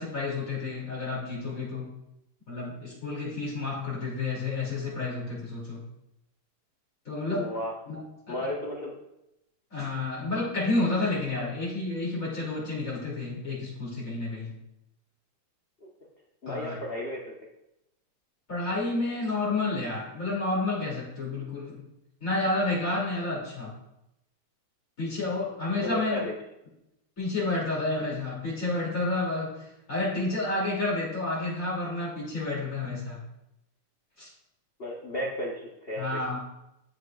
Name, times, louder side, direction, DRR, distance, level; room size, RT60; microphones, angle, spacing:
voice 1, 0.0-1.9 2.5-5.8 7.0-7.5 7.9-8.0 8.3-8.4 9.7-14.5 16.5-16.8 18.5-21.8 22.2-23.7 25.0-26.2 27.2-33.2 34.2-34.3 36.0-36.4, left 2 dB, 40° left, -5 dB, 3.0 m, -30 dB
voice 2, 7.3-7.7 8.3-8.9 15.8-15.9 16.4-17.3 25.8-26.3 34.8-36.2, left 1 dB, 60° left, -2 dB, 0.6 m, -33 dB
12.5 x 4.8 x 2.4 m, 0.86 s
omnidirectional pair, 2.3 m